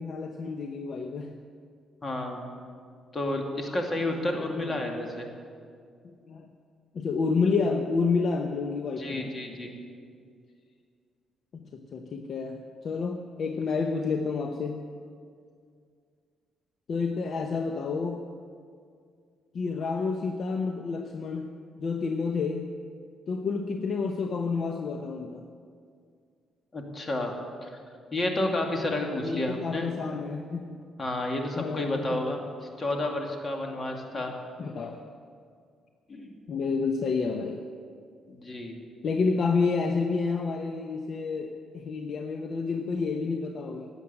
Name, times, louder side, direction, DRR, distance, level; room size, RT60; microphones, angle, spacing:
voice 1, 0.0-1.4 4.6-4.8 6.0-6.5 6.9-9.3 11.5-14.8 16.9-18.2 19.5-22.7 23.3-25.5 29.2-30.8 31.6-32.3 34.1-34.2 34.6-35.1 36.5-37.6 39.0-43.9, left 4 dB, 55° left, 4 dB, 0.9 m, -29 dB
voice 2, 2.0-2.5 3.1-5.3 9.0-9.7 26.7-27.3 27.6-27.8 28.1-29.9 31.0-34.3 36.1-36.4 38.3-38.8, left 1 dB, 30° left, 2 dB, 2.4 m, -31 dB
12.5 x 8.3 x 9.7 m, 2.2 s
cardioid pair, 90°, 0 cm